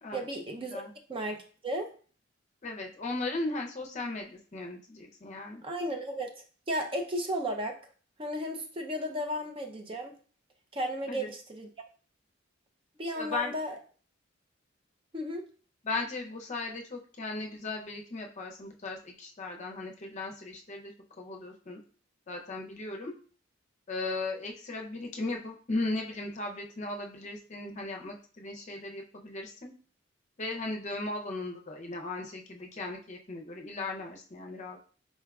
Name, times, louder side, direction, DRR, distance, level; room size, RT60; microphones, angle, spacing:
voice 1, 0.1-0.8 1.1-1.9 5.6-6.3 6.7-7.8 8.2-10.1 10.7-11.7 13.0-13.8 15.1-15.4, equal, 25° right, 3 dB, 0.5 m, -34 dB
voice 2, 2.6-5.6 11.1-11.3 13.2-13.5 15.8-20.9 21.2-21.8 22.3-23.1 23.9-29.7 30.4-34.8, left 2 dB, 35° left, 2 dB, 0.6 m, -37 dB
4.3 x 3.5 x 2.3 m, 0.41 s
head